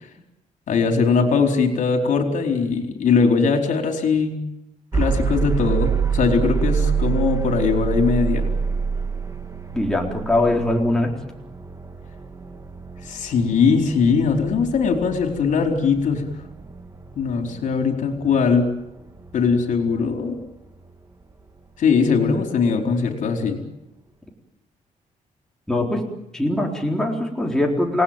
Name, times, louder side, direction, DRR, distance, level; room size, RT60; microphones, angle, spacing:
voice 1, 0.7-4.4 4.9-8.5 13.0-16.3 17.2-18.7 19.3-20.4 21.8-23.6, left 5 dB, 70° left, 4 dB, 4.4 m, -20 dB
sound 1, 4.9-20.9, right 6 dB, 25° right, 2.0 m, -27 dB
voice 2, 9.7-11.1 25.7-26.0 26.3-28.0, left 1 dB, 5° left, -1 dB, 4.1 m, -21 dB
28.5 x 19.0 x 9.1 m, 0.89 s
cardioid pair, 120°, 14 cm